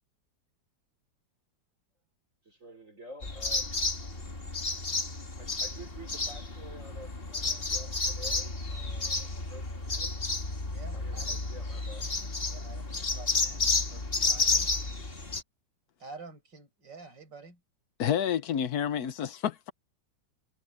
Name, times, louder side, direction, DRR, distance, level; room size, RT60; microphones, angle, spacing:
voice 1, 2.4-3.9 5.4-10.2 10.9-12.1, right 1 dB, 40° right, 4.9 m, -49 dB
sound 1, 3.2-15.4, left 3 dB, 30° left, 2.2 m, -31 dB
voice 2, 10.6-11.5 12.5-14.7 16.0-17.6, right 4 dB, 70° right, 6.4 m, -49 dB
voice 3, 18.0-19.7, left 9 dB, 60° left, 1.3 m, -29 dB
omnidirectional pair, 2.0 m